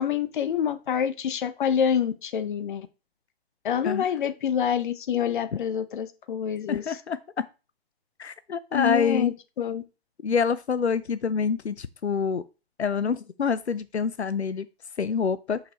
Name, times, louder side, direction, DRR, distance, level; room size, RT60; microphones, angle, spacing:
voice 1, 0.0-2.9 3.6-6.8 8.7-9.8, left 8 dB, 50° left, 12 dB, 0.8 m, -27 dB
voice 2, 6.7-7.2 8.2-9.3 10.2-12.4 12.8-14.7 15.0-15.6, left 6 dB, 90° left, 14 dB, 0.5 m, -26 dB
6.3 x 5.8 x 3.0 m, 0.30 s
figure-of-eight pair, 125°, 32 cm